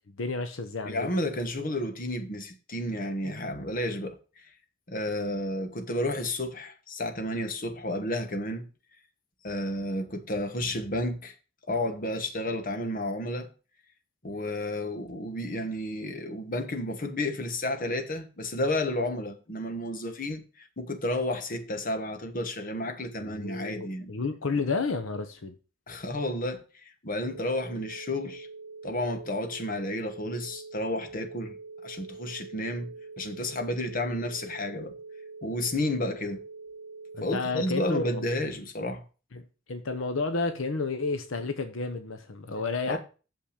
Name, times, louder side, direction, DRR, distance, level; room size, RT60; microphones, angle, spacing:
voice 1, 0.2-1.1 23.2-25.5 37.1-38.2 39.3-43.0, left 3 dB, 75° left, 0.9 m, -31 dB
voice 2, 0.8-4.5 4.9-8.7 9.4-11.3 11.7-13.5 14.2-24.1 24.5-24.6 25.9-28.5 28.8-31.6 31.8-35.0 35.4-36.4 37.2-39.0 42.9-43.0, left 1 dB, 45° left, 1.3 m, -31 dB
sound 1, 27.2-38.5, right 3 dB, 65° right, 1.3 m, -44 dB
7.0 x 5.8 x 6.6 m
head